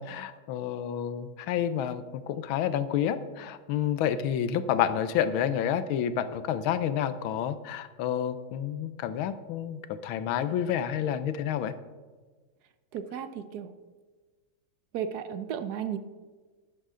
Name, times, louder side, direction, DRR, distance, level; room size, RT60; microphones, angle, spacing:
voice 1, 0.0-11.7, left 9 dB, 85° left, 12 dB, 1.5 m, -29 dB
voice 2, 12.9-13.7 14.9-16.0, right 8 dB, 70° right, 10 dB, 1.0 m, -34 dB
11.0 x 10.5 x 3.8 m, 1.4 s
omnidirectional pair, 2.2 m